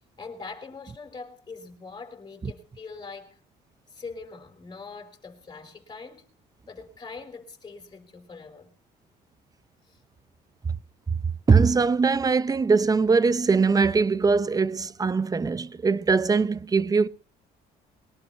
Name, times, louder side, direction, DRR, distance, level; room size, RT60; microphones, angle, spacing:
voice 1, 0.2-3.4 3.9-6.3 6.7-8.7 9.9-10.0, left 4 dB, 25° left, 5.4 m, -42 dB
voice 2, 11.5-17.1, right 4 dB, 20° right, 0.8 m, -21 dB
23.0 x 12.0 x 4.4 m
cardioid pair, 110°, 17 cm